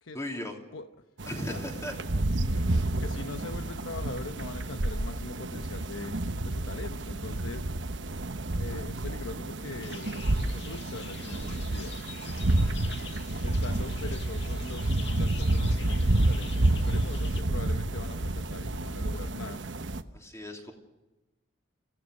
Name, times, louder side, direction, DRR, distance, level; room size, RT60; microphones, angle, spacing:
voice 1, 0.1-0.6 1.3-2.0 2.7-2.8 12.4-12.7 20.1-20.7, left 1 dB, 15° left, 2 dB, 3.1 m, -37 dB
sound 1, 1.2-20.0, right 1 dB, 70° right, 1.1 m, -29 dB
voice 2, 3.0-6.2 6.4-7.6 8.6-11.9 13.4-19.6, left 3 dB, 85° left, 8 dB, 1.0 m, -42 dB
sound 2, 9.8-17.4, left 6 dB, 60° left, 2.0 m, -46 dB
26.5 x 16.0 x 6.5 m, 1.0 s
head